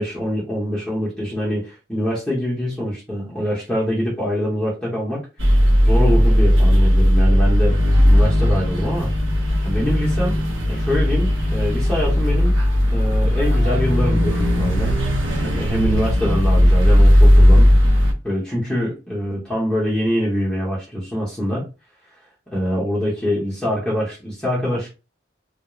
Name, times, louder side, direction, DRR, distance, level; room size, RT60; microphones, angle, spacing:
voice 1, 0.0-5.3 5.8-9.1 9.6-10.4 10.7-12.6 12.9-15.0 15.4-21.7 22.5-24.9, equal, 5° left, -7 dB, 0.8 m, -24 dB
sound 1, 5.4-18.1, equal, 85° right, 0.8 m, -16 dB
2.3 x 2.1 x 2.9 m, 0.29 s
head